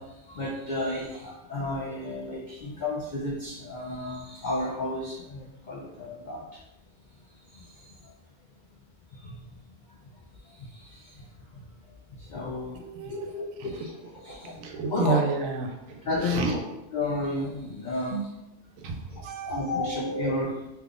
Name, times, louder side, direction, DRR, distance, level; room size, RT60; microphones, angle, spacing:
voice 1, 0.0-6.6 7.2-8.1 9.1-11.7 12.1-13.9 14.2-15.2 16.0-16.6 16.9-18.2 19.1-20.7, left 2 dB, 75° left, -3 dB, 0.4 m, -33 dB
voice 2, 12.7-13.9 14.2-16.5 18.1-18.3 18.8-20.0, right 4 dB, 85° right, 3 dB, 1.0 m, -32 dB
3.5 x 2.9 x 2.4 m, 0.94 s
omnidirectional pair, 1.3 m